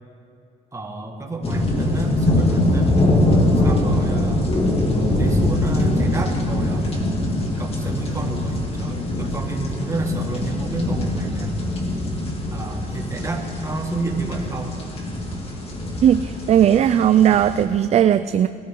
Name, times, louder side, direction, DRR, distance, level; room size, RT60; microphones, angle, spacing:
voice 1, 0.7-3.0 3.6-4.5 5.1-6.9 7.6-11.7 12.5-14.7, right 3 dB, 20° right, 1 dB, 1.9 m, -30 dB
sound 1, 1.4-17.6, left 1 dB, 35° left, 2.6 m, -22 dB
voice 2, 16.0-18.5, right 10 dB, 40° right, 12 dB, 0.4 m, -17 dB
20.0 x 13.5 x 3.9 m, 2.8 s
cardioid pair, 110°, 17 cm